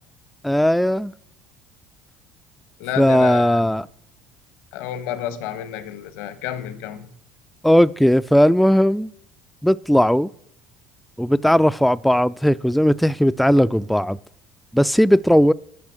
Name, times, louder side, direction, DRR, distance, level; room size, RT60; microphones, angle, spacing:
voice 1, 0.4-1.1 3.0-3.9 7.6-9.1 9.6-10.3 11.2-14.2 14.7-15.5, equal, ahead, 0.3 m, -17 dB
voice 2, 2.8-3.6 4.7-7.1, left 10 dB, 80° left, 1.2 m, -30 dB
12.0 x 5.4 x 7.7 m
supercardioid pair, 80°, 4 cm